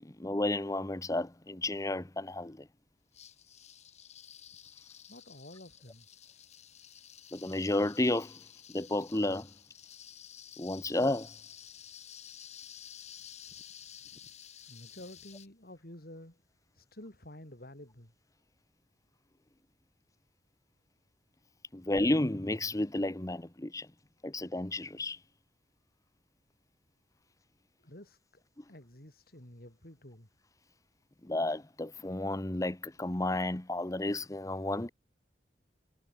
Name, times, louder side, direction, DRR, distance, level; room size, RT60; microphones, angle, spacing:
voice 1, 0.0-2.7 7.3-8.4 8.7-9.5 10.6-11.3 21.7-23.9 24.2-25.2 31.2-34.9, left 1 dB, 20° left, 0.9 m, -32 dB
sound 1, 3.1-15.5, left 9 dB, 40° left, 2.8 m, -52 dB
voice 2, 5.1-6.1 14.7-16.4 16.7-18.1 27.8-28.4 28.7-30.3, left 1 dB, 60° left, 4.8 m, -50 dB
head